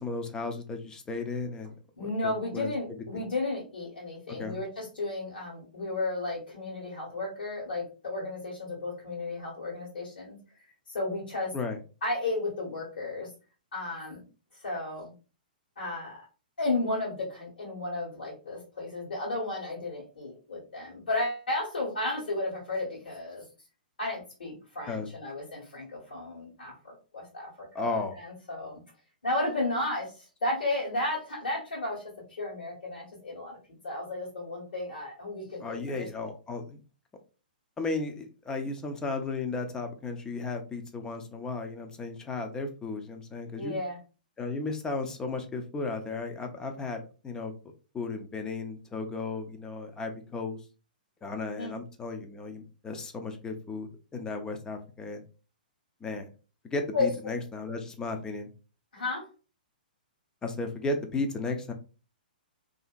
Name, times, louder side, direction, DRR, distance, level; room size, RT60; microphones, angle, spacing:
voice 1, 0.0-1.7 2.0-2.7 3.1-3.2 4.4-4.6 11.5-11.8 24.9-25.1 27.7-28.2 35.6-36.8 37.8-43.7 44.4-47.5 47.9-50.6 51.2-55.2 56.0-56.3 56.6-58.5 60.4-61.7, left 3 dB, 15° left, 5 dB, 0.5 m, -34 dB
voice 2, 2.0-10.4 10.9-11.5 12.0-13.3 13.7-14.2 14.6-15.1 15.8-16.2 16.6-23.4 24.0-28.8 29.2-32.0 32.3-33.6 33.8-36.3 43.6-44.0 51.6-51.8 56.9-57.1 58.9-59.2, left 2 dB, 70° left, -7 dB, 1.2 m, -33 dB
2.7 x 2.6 x 2.3 m, 0.35 s
figure-of-eight pair, 120°, 5 cm